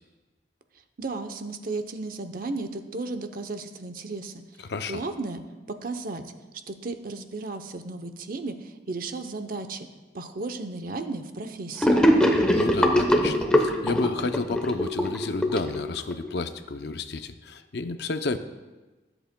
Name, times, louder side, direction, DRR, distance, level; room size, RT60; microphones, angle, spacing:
voice 1, 1.0-4.3 4.9-5.4 5.8-6.2 6.7-9.9 10.1-12.0, right 3 dB, 50° right, 8 dB, 0.7 m, -34 dB
voice 2, 4.6-5.0 12.4-18.4, left 3 dB, 60° left, 9 dB, 0.5 m, -31 dB
Gurgling / Sink (filling or washing), 11.8-16.3, equal, 5° left, 0.9 m, -22 dB
23.5 x 7.9 x 2.2 m, 1.2 s
head